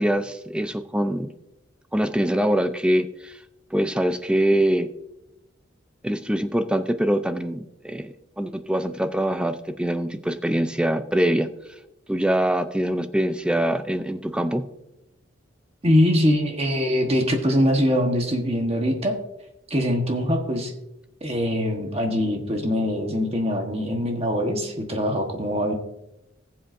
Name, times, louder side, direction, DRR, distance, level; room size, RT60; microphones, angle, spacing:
voice 1, 0.0-1.3 1.9-3.4 3.7-4.9 6.0-11.5 12.1-14.6, right 1 dB, 5° right, 9 dB, 0.4 m, -24 dB
voice 2, 15.8-19.2 19.7-20.7 21.2-25.7, equal, 30° right, 2 dB, 1.2 m, -23 dB
19.5 x 7.7 x 2.6 m, 0.88 s
head